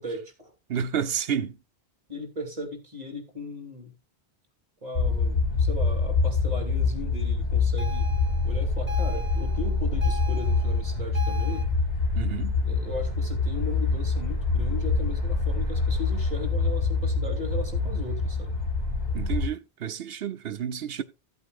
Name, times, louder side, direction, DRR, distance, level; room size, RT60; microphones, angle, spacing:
voice 1, 0.0-0.5 2.1-3.9 4.8-8.1 8.4-11.7 12.6-18.5, left 1 dB, 40° right, 3.0 m, -37 dB
voice 2, 0.7-1.6 12.1-12.6 19.1-21.0, right 8 dB, 70° right, 0.9 m, -30 dB
sound 1, 4.9-19.5, left 4 dB, 40° left, 2.8 m, -25 dB
sound 2, 7.8-11.6, right 2 dB, 10° right, 2.1 m, -40 dB
15.5 x 8.3 x 2.4 m
omnidirectional pair, 1.0 m